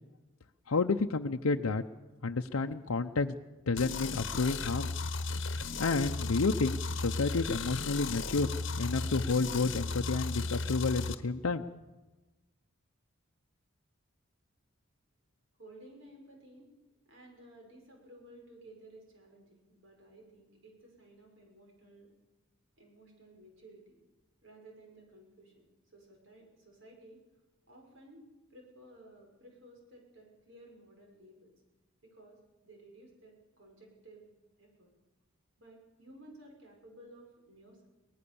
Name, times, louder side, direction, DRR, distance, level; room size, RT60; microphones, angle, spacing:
voice 1, 0.7-1.8 2.2-3.3 3.7-4.9 5.8-11.6, left 3 dB, 85° left, 4 dB, 0.7 m, -30 dB
sound 1, 3.8-11.2, left 3 dB, 60° left, 1.1 m, -35 dB
voice 2, 15.5-16.7 17.1-22.1 22.8-24.0 24.4-27.2 27.7-31.5 32.0-34.3 34.6-34.9 35.6-37.9, right 1 dB, 65° right, 1 dB, 6.1 m, -56 dB
23.5 x 18.5 x 7.0 m, 1.1 s
head